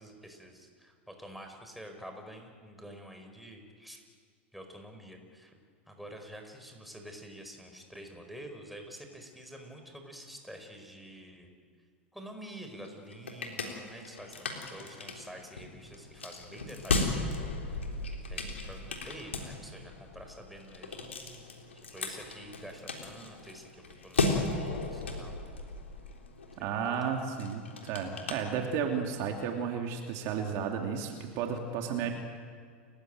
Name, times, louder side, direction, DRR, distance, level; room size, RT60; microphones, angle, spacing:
voice 1, 0.0-4.0 4.5-5.5 5.9-11.5 12.1-17.5 18.2-21.5 21.8-25.4 26.5-27.2 32.0-32.1, equal, ahead, 4 dB, 4.9 m, -48 dB
sound 1, 12.8-29.1, left 3 dB, 90° left, 3.7 m, -36 dB
voice 2, 26.6-32.1, right 7 dB, 50° right, 3 dB, 2.8 m, -33 dB
30.0 x 15.5 x 9.1 m, 2.1 s
hypercardioid pair, 100°, 6 cm